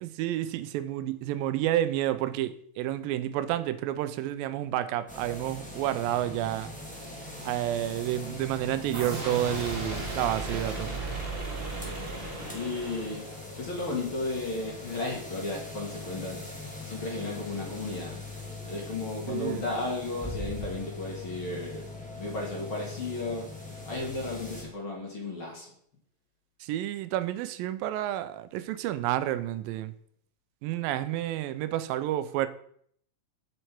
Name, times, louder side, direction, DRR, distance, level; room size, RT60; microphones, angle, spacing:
voice 1, 0.0-6.7 7.4-10.9 19.3-19.6 26.6-29.9 30.6-32.5, right 13 dB, 85° right, 13 dB, 2.3 m, -30 dB
sound 1, 5.1-24.6, left 2 dB, 5° left, 1.3 m, -41 dB
sound 2, 8.9-13.6, right 3 dB, 25° right, 1.2 m, -36 dB
voice 2, 12.5-13.2 13.6-16.4 16.8-18.2 18.7-21.8 22.2-23.4 23.9-25.7, left 2 dB, 40° left, -2 dB, 2.6 m, -34 dB
7.9 x 7.7 x 4.5 m, 0.64 s
omnidirectional pair, 4.0 m